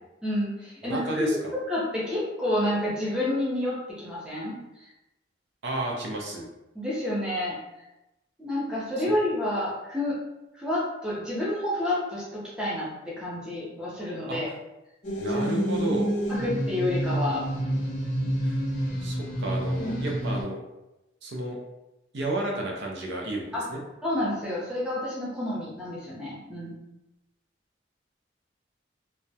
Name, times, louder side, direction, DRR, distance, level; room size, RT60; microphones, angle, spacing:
voice 1, 0.2-1.3 1.5-4.9 6.7-7.6 8.4-10.2 10.5-14.5 15.3-15.4 16.3-17.4 19.8-20.0 23.5-23.6 24.0-26.8, left 1 dB, 5° right, -7 dB, 0.5 m, -29 dB
voice 2, 0.8-1.5 5.6-6.5 9.1-9.2 14.3-14.4 15.2-16.1 18.4-18.6 19.0-20.6 21.2-21.6 22.1-23.4 23.7-23.8, right 2 dB, 70° right, -1 dB, 0.5 m, -31 dB
sound 1, 15.0-20.4, equal, 40° left, 0.6 m, -28 dB
2.2 x 2.0 x 2.7 m, 0.96 s
head